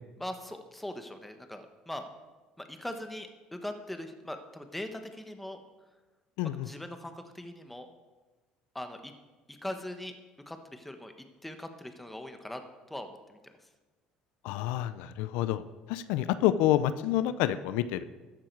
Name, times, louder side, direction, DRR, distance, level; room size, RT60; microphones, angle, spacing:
voice 1, 0.2-2.1 2.6-5.6 6.6-7.9 8.7-9.1 9.5-10.1 10.5-11.1 11.4-12.6 12.9-13.7, left 1 dB, 5° left, 7 dB, 1.3 m, -41 dB
voice 2, 14.4-15.6 15.9-18.0, left 13 dB, 85° left, 14 dB, 0.5 m, -28 dB
13.5 x 9.6 x 4.7 m, 1.2 s
cardioid pair, 110°, 2 cm